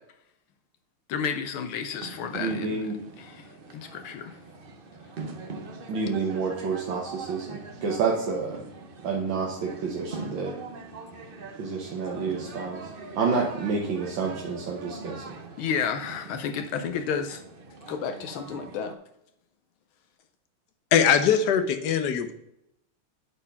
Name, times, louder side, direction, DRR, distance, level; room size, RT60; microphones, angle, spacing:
voice 1, 1.1-2.8 3.2-3.5 3.7-4.3 15.6-17.4 17.9-18.9, left 7 dB, 75° left, 6 dB, 1.5 m, -31 dB
sound 1, 1.9-18.9, right 3 dB, 80° right, 0.4 m, -42 dB
voice 2, 2.4-3.0 5.9-8.6 9.0-10.5 11.6-12.8 13.2-15.4, right 4 dB, 65° right, -2 dB, 1.9 m, -29 dB
voice 3, 20.9-22.3, left 7 dB, 60° left, 9 dB, 1.2 m, -21 dB
8.5 x 4.5 x 5.6 m, 0.80 s
omnidirectional pair, 2.4 m